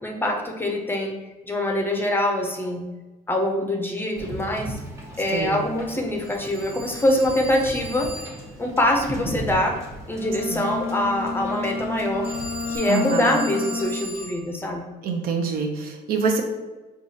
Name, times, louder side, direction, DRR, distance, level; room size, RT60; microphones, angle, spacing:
voice 1, 0.0-1.2 1.5-2.8 3.3-4.8 5.2-8.1 8.6-9.8 10.1-12.3 12.7-14.8, left 1 dB, 10° left, 1 dB, 0.6 m, -24 dB
Wind / Boat Water vehicle, 4.2-12.8, equal, 15° right, 0.9 m, -38 dB
Telephone, 6.2-8.6 12.2-14.4, right 2 dB, 80° right, 1.2 m, -38 dB
Bowed string instrument, 10.1-14.3, left 4 dB, 75° left, 0.5 m, -30 dB
voice 2, 12.9-13.3 15.0-16.4, right 4 dB, 65° right, 4 dB, 0.6 m, -25 dB
4.7 x 2.3 x 2.7 m, 1.2 s
cardioid pair, 110°, 17 cm